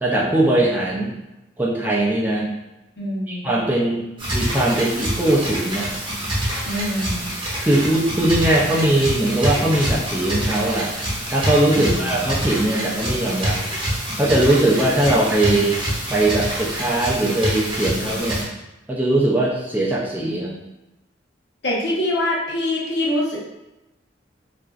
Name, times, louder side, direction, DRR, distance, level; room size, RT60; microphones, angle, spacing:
voice 1, 0.0-1.1 1.6-2.5 3.3-4.0 4.3-5.9 7.6-10.9 11.3-13.6 14.2-15.8 16.1-18.5 18.9-20.5, right 1 dB, 10° right, -5 dB, 0.4 m, -20 dB
voice 2, 3.0-3.5 6.7-7.3 11.7-12.2 21.6-23.4, left 1 dB, 65° left, -5 dB, 0.8 m, -24 dB
sound 1, 4.2-18.4, equal, 25° right, 0.8 m, -26 dB
2.9 x 2.5 x 2.4 m, 0.97 s
head